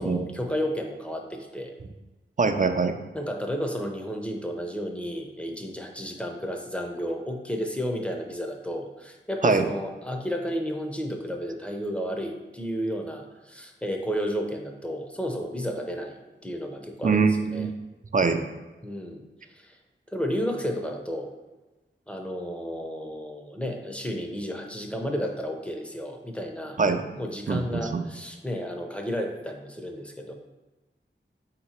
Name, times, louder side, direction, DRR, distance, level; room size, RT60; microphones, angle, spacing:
voice 1, 0.0-1.7 3.1-17.7 18.8-19.2 19.5-19.8 20.1-21.3 22.1-26.8 27.2-30.3, equal, 5° left, 2 dB, 0.6 m, -32 dB
voice 2, 2.4-3.0 9.4-9.6 17.0-17.7 18.1-18.4 26.8-27.1 27.5-28.0, right 4 dB, 40° right, 7 dB, 0.4 m, -23 dB
4.3 x 2.9 x 4.3 m, 1.1 s
wide cardioid pair, 50°, 21 cm